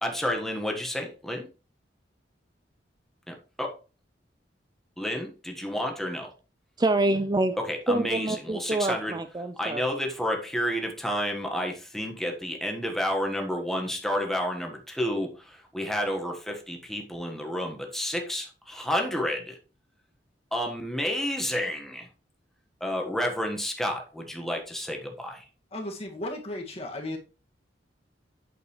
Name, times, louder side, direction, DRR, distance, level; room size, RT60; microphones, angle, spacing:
voice 1, 0.0-1.5 3.3-3.7 5.0-6.3 7.6-9.2 9.6-19.6 20.5-22.1 22.8-25.5, equal, ahead, 2 dB, 1.4 m, -30 dB
voice 2, 6.8-7.6 7.9-9.8, right 2 dB, 25° right, 10 dB, 0.5 m, -26 dB
voice 3, 25.7-27.2, left 1 dB, 35° left, 1 dB, 1.9 m, -35 dB
8.6 x 6.5 x 3.1 m, 0.33 s
head